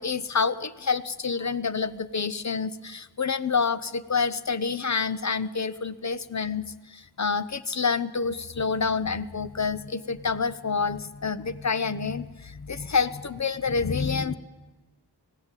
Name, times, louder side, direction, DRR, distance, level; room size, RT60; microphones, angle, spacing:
voice 1, 0.0-14.3, left 5 dB, 40° left, 14 dB, 0.8 m, -28 dB
19.0 x 15.0 x 9.0 m, 1.2 s
wide cardioid pair, 50°, 42 cm